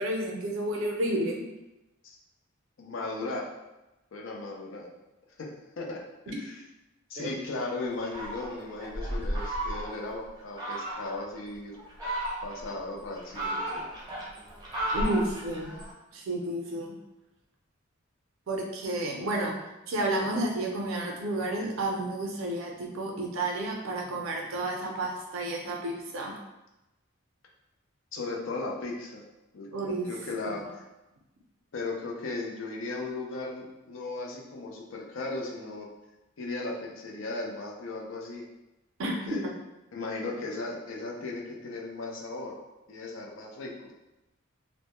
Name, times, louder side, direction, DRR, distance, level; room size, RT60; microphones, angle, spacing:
voice 1, 0.0-1.4 7.2-7.3 14.9-15.7 16.1-16.9 18.5-19.5 19.9-26.3 29.7-30.1 30.4-30.5 39.0-39.1 39.4-39.5, right 1 dB, 75° right, 0 dB, 0.5 m, -31 dB
voice 2, 2.8-3.5 4.1-4.9 5.4-6.0 6.3-6.6 7.1-11.7 12.4-13.8 28.1-29.2 29.5-29.7 30.1-30.8 31.7-35.9 36.4-38.4 39.0-39.5 39.9-42.5 42.9-43.9, left 3 dB, 65° left, -1 dB, 0.4 m, -36 dB
Fowl, 8.0-10.1 10.6-11.2 11.8-12.7 13.1-15.9, right 1 dB, 20° right, 0.5 m, -33 dB
2.1 x 2.0 x 2.8 m, 0.98 s
head